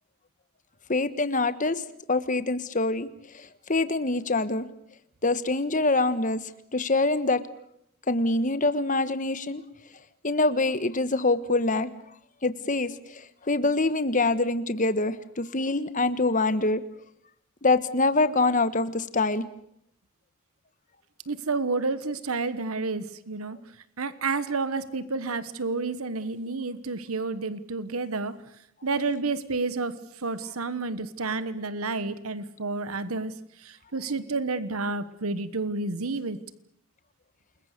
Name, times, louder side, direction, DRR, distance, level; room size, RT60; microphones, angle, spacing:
voice 1, 0.9-1.8 2.1-3.1 3.3-4.7 5.2-6.4 6.7-7.4 8.1-9.6 10.2-11.9 12.4-16.8 17.6-19.4, left 2 dB, 35° left, 12 dB, 1.3 m, -25 dB
voice 2, 21.3-23.6 24.0-28.3 28.8-36.4, right 3 dB, 85° right, 14 dB, 1.3 m, -30 dB
28.5 x 21.5 x 6.8 m, 0.74 s
head